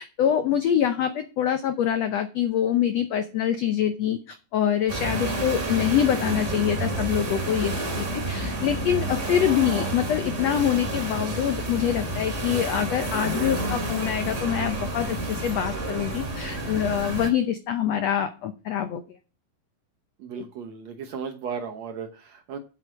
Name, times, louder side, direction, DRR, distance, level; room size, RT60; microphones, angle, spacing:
voice 1, 0.0-19.0, left 10 dB, 85° left, 9 dB, 1.4 m, -25 dB
sound 1, 4.9-17.3, right 1 dB, 25° right, 2.2 m, -29 dB
voice 2, 20.2-22.6, right 6 dB, 65° right, 6 dB, 1.8 m, -36 dB
8.2 x 8.1 x 6.1 m, 0.35 s
omnidirectional pair, 4.1 m